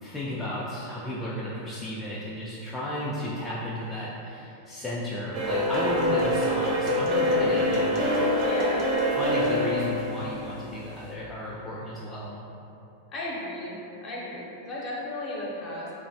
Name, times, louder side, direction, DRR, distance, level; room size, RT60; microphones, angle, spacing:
voice 1, 0.0-8.1 9.1-12.4, left 1 dB, 10° left, -8 dB, 0.4 m, -33 dB
sound 1, 5.3-11.1, left 1 dB, 50° right, 0.5 m, -25 dB
voice 2, 7.3-7.8 8.4-8.8 13.1-15.9, left 1 dB, 40° left, -5 dB, 0.8 m, -35 dB
3.1 x 2.0 x 2.7 m, 2.8 s
hypercardioid pair, 110°, 0 cm